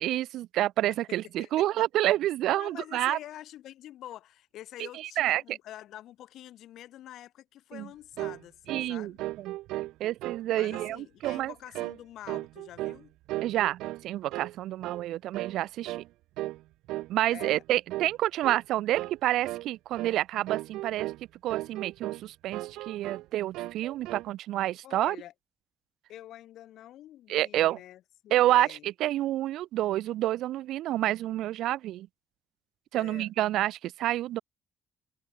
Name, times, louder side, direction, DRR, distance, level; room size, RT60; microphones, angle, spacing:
voice 1, 0.0-3.2 4.8-5.6 7.7-7.9 8.7-9.1 9.4-9.5 10.0-11.5 13.4-16.0 17.1-21.1 21.4-25.2 27.3-27.8 28.3-32.1 32.9-34.4, right 14 dB, 65° right, 0.5 m, -28 dB
voice 2, 2.5-9.2 10.5-13.1 17.3-17.6 24.8-25.3 26.1-28.9 33.0-33.3, left 13 dB, 60° left, 4.5 m, -46 dB
sound 1, 8.2-8.4 8.7-8.9 9.2-10.4 10.7-11.0 11.2-11.5 11.7-12.0 12.3-13.0 13.3-14.1 14.3-14.5 14.8-15.0 15.3-15.6 15.9-16.1 16.4-16.6 16.9-17.1 17.4-17.6 17.9-18.1 18.4-18.6 18.9-19.2 19.4-19.7 19.9-20.2 20.5-21.2 21.5-22.2 22.5-23.3 23.5-24.3, right 17 dB, 90° right, 1.8 m, -36 dB
cardioid pair, 160°, 0 cm